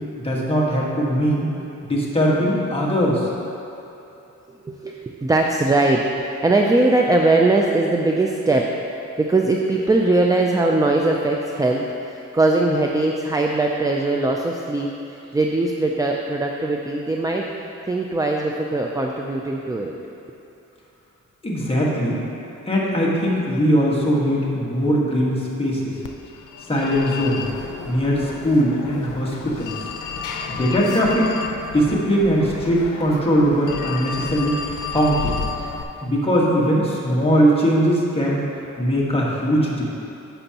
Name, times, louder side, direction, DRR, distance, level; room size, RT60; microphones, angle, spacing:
voice 1, 0.2-1.5 1.8-3.3 21.4-22.2 22.7-25.9 26.7-27.5 27.8-29.8 30.5-31.3 31.7-34.6 34.9-35.4 36.0-38.4 38.8-39.9, equal, 20° left, -5 dB, 1.5 m, -20 dB
voice 2, 4.5-8.7 9.2-17.5 17.9-19.9, right 2 dB, 10° right, 0 dB, 0.4 m, -20 dB
Telephone, 26.0-35.8, left 5 dB, 85° left, 0.6 m, -32 dB
10.5 x 7.0 x 2.9 m, 2.9 s
wide cardioid pair, 115°, 31 cm